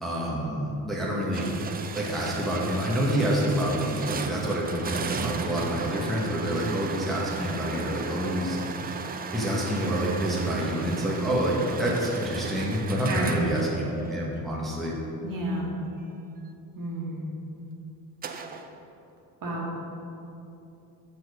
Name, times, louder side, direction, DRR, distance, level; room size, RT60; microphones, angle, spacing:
voice 1, 0.0-1.5 1.9-8.6 8.8-8.9 9.3-15.0, equal, ahead, -5 dB, 1.1 m, -27 dB
sound 1, 1.3-14.4 18.2-18.7, right 4 dB, 25° right, 0.3 m, -35 dB
voice 2, 13.1-13.4 15.2-15.7 16.8-17.2 19.4-19.7, right 1 dB, 55° right, -3 dB, 1.6 m, -30 dB
6.8 x 4.3 x 4.8 m, 2.8 s
cardioid pair, 100°, 40 cm